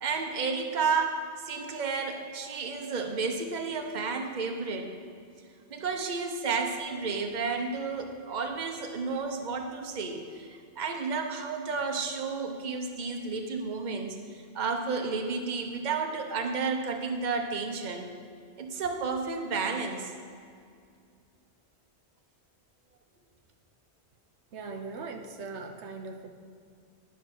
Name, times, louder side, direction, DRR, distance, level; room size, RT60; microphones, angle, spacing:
voice 1, 0.0-4.9 5.7-18.1 18.6-20.1, right 4 dB, 45° right, 4 dB, 1.0 m, -32 dB
voice 2, 24.5-26.3, right 4 dB, 85° right, 5 dB, 1.1 m, -40 dB
10.5 x 6.1 x 6.1 m, 2.3 s
omnidirectional pair, 1.1 m